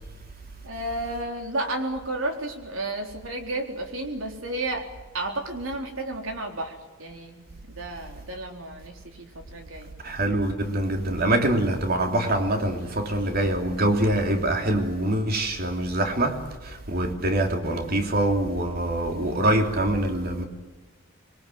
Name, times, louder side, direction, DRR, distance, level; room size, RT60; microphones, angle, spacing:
voice 1, 0.6-4.9 5.1-6.7 7.0-7.4 7.8-9.9, right 2 dB, 90° right, 4.0 m, -32 dB
voice 2, 10.0-20.4, right 1 dB, 50° right, 3.3 m, -24 dB
25.5 x 23.0 x 7.9 m
head